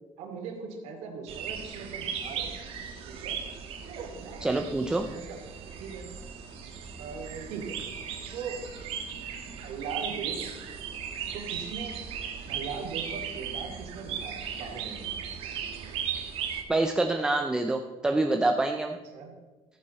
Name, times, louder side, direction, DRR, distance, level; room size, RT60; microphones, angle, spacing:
voice 1, 0.2-2.5 3.0-3.4 3.8-4.6 4.9-6.1 7.0-7.8 8.3-8.7 9.1-10.4 11.3-12.0 12.4-15.2 19.1-19.3, right 5 dB, 80° right, 0 dB, 2.5 m, -40 dB
sound 1, 1.3-16.6, right 7 dB, 55° right, 1.3 m, -37 dB
voice 2, 4.4-5.1 16.7-19.0, right 2 dB, 5° right, 4 dB, 0.5 m, -26 dB
14.0 x 9.6 x 4.3 m, 1.2 s
cardioid pair, 180°, 12 cm